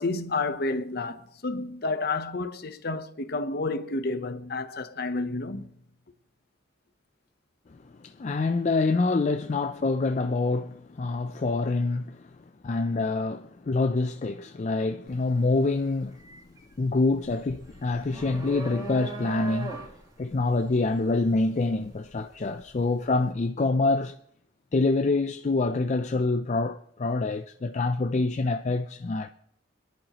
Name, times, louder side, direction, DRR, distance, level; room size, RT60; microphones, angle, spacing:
voice 1, 0.0-5.7, left 3 dB, 55° left, 0.8 m, -30 dB
voice 2, 7.7-12.3 12.6-16.2 16.8-19.8 20.2-24.2 24.7-29.3, left 3 dB, 35° left, 0.4 m, -26 dB
sound 1, 15.1-15.3 15.7-22.7, right 3 dB, 20° right, 3.3 m, -39 dB
26.0 x 10.5 x 3.0 m
head